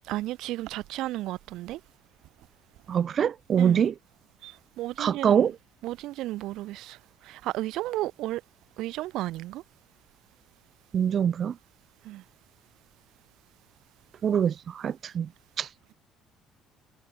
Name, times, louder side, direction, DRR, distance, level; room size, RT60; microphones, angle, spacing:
voice 1, 0.1-1.8 3.6-3.8 4.4-5.5 5.8-7.0 7.2-8.4 8.8-9.6 12.0-12.2, right 16 dB, 75° right, 3.3 m, -33 dB
voice 2, 2.9-3.9 5.0-5.6 10.9-11.6 14.2-15.3 15.6-15.7, right 8 dB, 45° right, 2.6 m, -24 dB
cardioid pair, 105°, 0 cm